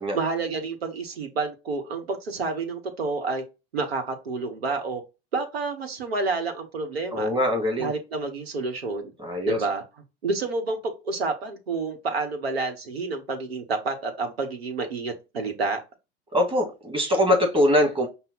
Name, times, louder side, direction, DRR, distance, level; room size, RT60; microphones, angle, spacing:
voice 1, 0.1-3.4 3.7-5.0 5.3-7.3 7.8-9.1 9.5-15.8, right 3 dB, 85° right, 1.1 m, -29 dB
voice 2, 7.1-7.9 9.2-9.6 16.3-18.1, left 1 dB, 20° right, 1.8 m, -22 dB
5.6 x 2.2 x 3.9 m
hypercardioid pair, 80°, 30 cm